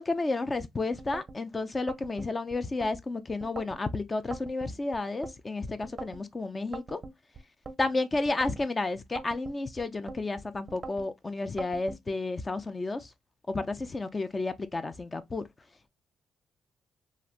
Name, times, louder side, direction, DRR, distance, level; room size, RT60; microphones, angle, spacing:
voice 1, 0.0-7.0 7.8-13.1 13.5-15.4, left 3 dB, 25° left, 0.5 m, -31 dB
sound 1, 1.0-1.4 1.9-2.9 3.4-3.8 4.3-5.4 5.8-6.2 6.7-7.8 8.3-8.7 9.2-10.2 10.7-11.1 11.6-12.0, right 3 dB, 35° right, 0.6 m, -42 dB
3.2 x 2.4 x 2.4 m
cardioid pair, 90°, 0 cm